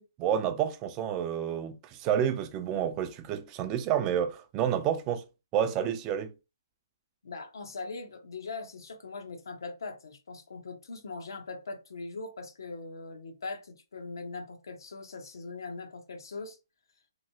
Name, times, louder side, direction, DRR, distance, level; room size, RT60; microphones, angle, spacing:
voice 1, 0.2-5.2 5.5-6.3, right 9 dB, 20° right, 0.3 m, -29 dB
voice 2, 7.2-16.6, left 3 dB, 75° left, 0.8 m, -41 dB
3.0 x 2.7 x 2.7 m
hypercardioid pair, 155°, 2 cm